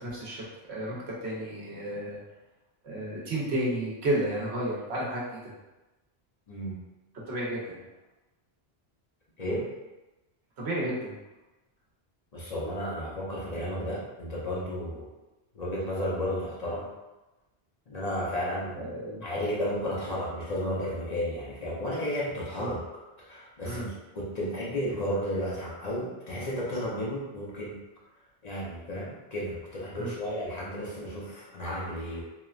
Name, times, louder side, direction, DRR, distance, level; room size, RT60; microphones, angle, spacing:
voice 1, 0.0-2.2 2.8-5.4 7.3-7.8 10.6-11.1 18.8-19.2 22.6-22.7 23.6-23.9 30.0-30.1, right 1 dB, 90° right, -5 dB, 1.0 m, -32 dB
voice 2, 6.5-6.8 9.4-9.7 12.3-15.1 15.5-16.9 17.9-18.8 19.2-22.8 23.2-27.8 28.4-32.2, equal, 45° left, -6 dB, 0.7 m, -33 dB
3.1 x 2.1 x 2.3 m, 1.1 s
omnidirectional pair, 1.1 m